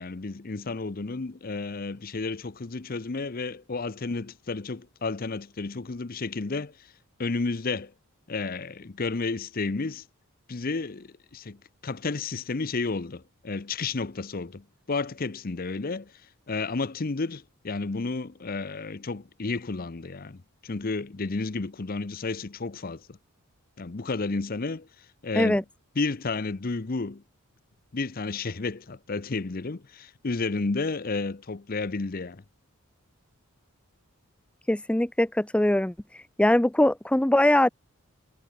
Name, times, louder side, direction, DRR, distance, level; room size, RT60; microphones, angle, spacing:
voice 1, 0.0-6.9 7.2-7.9 8.3-10.0 10.5-16.1 16.5-23.2 23.8-24.9 25.2-25.6 26.0-27.2 27.9-32.4, left 3 dB, 40° left, 0.7 m, -32 dB
voice 2, 34.7-35.9 36.4-37.7, left 1 dB, 5° left, 0.4 m, -21 dB
head